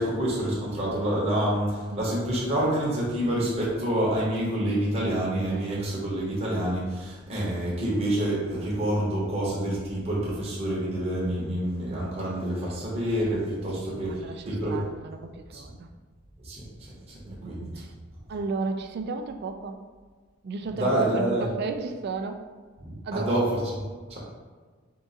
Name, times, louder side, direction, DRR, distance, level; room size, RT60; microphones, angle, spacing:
voice 1, 0.0-14.8 15.5-15.6 16.4-17.7 20.7-21.5 22.8-23.8 24.1-24.2, right 1 dB, 30° right, -6 dB, 0.9 m, -27 dB
voice 2, 13.7-15.9 17.3-17.9 18.3-19.8 20.4-22.5 23.0-23.4, right 4 dB, 50° right, 6 dB, 0.3 m, -34 dB
3.7 x 2.5 x 3.9 m, 1.5 s
head